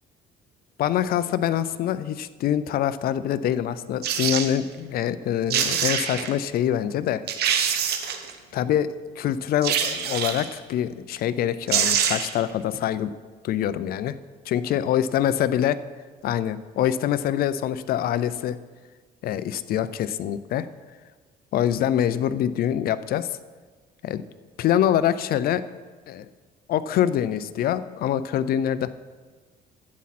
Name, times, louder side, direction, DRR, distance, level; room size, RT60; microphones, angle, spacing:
voice 1, 0.8-7.2 8.5-8.9 9.2-13.1 13.4-14.2 14.5-15.8 16.2-18.6 19.2-20.7 21.5-23.4 24.0-24.2 24.6-25.6 26.1-26.3 26.7-29.0, left 10 dB, 60° left, 15 dB, 0.5 m, -25 dB
sound 1, 4.0-4.5 5.2-5.3 5.5-6.3 6.8-6.9 7.3-8.3 9.6-10.5 11.4-11.5 11.7-12.4 12.7-12.8, right 8 dB, 70° right, 1.2 m, -24 dB
11.5 x 8.5 x 4.2 m, 1.4 s
cardioid pair, 110°, 17 cm